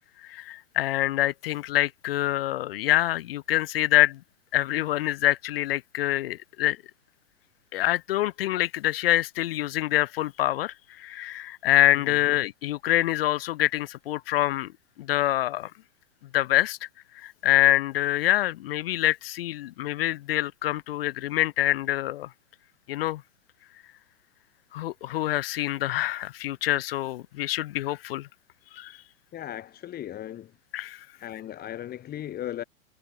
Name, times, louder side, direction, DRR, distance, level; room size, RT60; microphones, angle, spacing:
voice 1, 0.2-4.2 4.5-6.8 7.7-14.7 15.0-15.7 16.3-16.9 17.2-22.3 22.9-23.2 24.7-28.3 28.7-29.0 30.7-31.1, left 15 dB, 45° left, 0.5 m, -25 dB
voice 2, 29.3-30.5 31.1-32.6, left 12 dB, 20° left, 6.0 m, -37 dB
hypercardioid pair, 140°, 42 cm